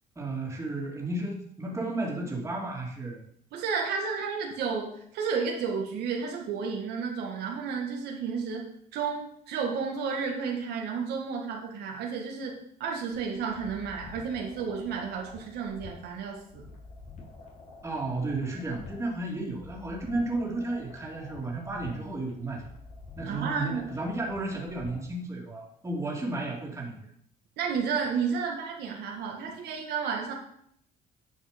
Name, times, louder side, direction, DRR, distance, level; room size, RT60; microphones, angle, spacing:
voice 1, 0.2-3.2 17.8-22.7 23.2-27.0, right 2 dB, 15° right, -2 dB, 2.5 m, -33 dB
voice 2, 3.5-16.6 23.2-23.9 27.6-30.3, right 5 dB, 75° right, 0 dB, 1.7 m, -32 dB
sound 1, 13.1-25.1, left 4 dB, 45° left, 3.0 m, -48 dB
9.3 x 5.6 x 5.2 m, 0.69 s
cardioid pair, 110°, 17 cm